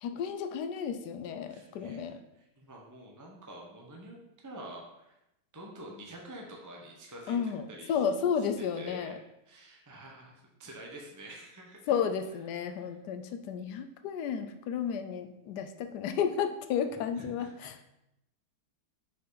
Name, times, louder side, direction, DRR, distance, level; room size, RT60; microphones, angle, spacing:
voice 1, 0.0-2.2 7.3-9.2 11.9-17.5, left 7 dB, 75° left, 8 dB, 1.1 m, -32 dB
voice 2, 1.5-4.2 4.4-5.2 5.5-7.4 7.7-8.0 8.3-11.9 12.7-13.0 16.9-17.8, right 1 dB, 20° right, -1 dB, 0.5 m, -48 dB
5.7 x 5.3 x 3.9 m, 0.87 s
omnidirectional pair, 1.9 m